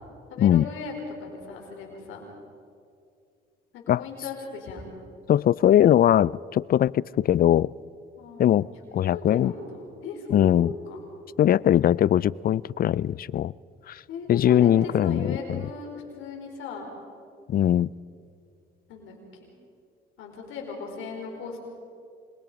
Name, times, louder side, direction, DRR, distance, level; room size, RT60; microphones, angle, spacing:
voice 1, 0.3-0.9 1.2-2.2 3.7-4.9 8.2-8.6 9.0-11.0 14.1-16.9 18.9-19.5 20.2-21.6, left 4 dB, 90° left, 1 dB, 4.7 m, -37 dB
voice 2, 5.3-7.7 8.4-8.7 8.9-9.5 10.3-10.7 11.4-13.5 13.9-14.0 14.3-15.6 17.5-17.9, left 11 dB, 50° left, 23 dB, 0.4 m, -21 dB
26.0 x 21.0 x 5.1 m, 2.4 s
cardioid pair, 90°, 20 cm